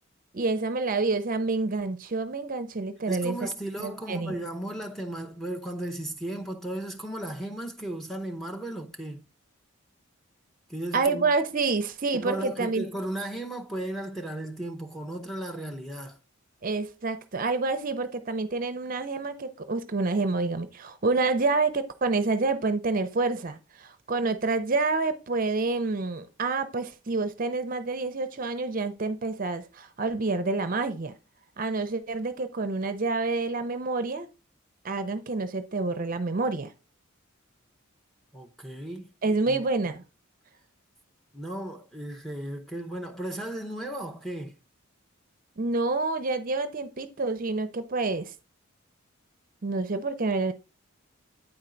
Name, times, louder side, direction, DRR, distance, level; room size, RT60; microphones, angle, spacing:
voice 1, 0.3-3.5 3.8-4.4 10.9-12.8 16.6-31.1 31.6-34.3 34.8-36.7 39.2-40.0 45.6-48.3 49.6-50.5, right 3 dB, 40° right, 0.5 m, -28 dB
voice 2, 3.1-9.3 10.7-11.3 12.1-16.2 38.3-39.1 39.5-39.6 41.3-44.6, right 1 dB, ahead, 0.7 m, -35 dB
8.8 x 4.4 x 3.8 m
head